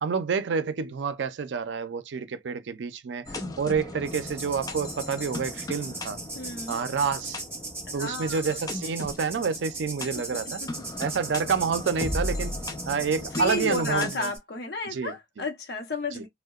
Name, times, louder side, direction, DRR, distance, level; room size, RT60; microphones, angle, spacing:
voice 1, 0.0-6.2 6.7-7.4 7.9-10.6 11.0-12.5 12.9-14.3 14.9-15.4 16.1-16.2, right 5 dB, 90° right, 0.4 m, -28 dB
sound 1, 3.3-14.1, left 2 dB, 20° left, 0.4 m, -37 dB
sound 2, 4.1-14.4, right 3 dB, 10° right, 1.1 m, -39 dB
voice 2, 6.3-6.8 8.0-8.4 10.6-10.7 13.4-16.3, left 3 dB, 65° left, 0.7 m, -32 dB
2.8 x 2.1 x 2.3 m
head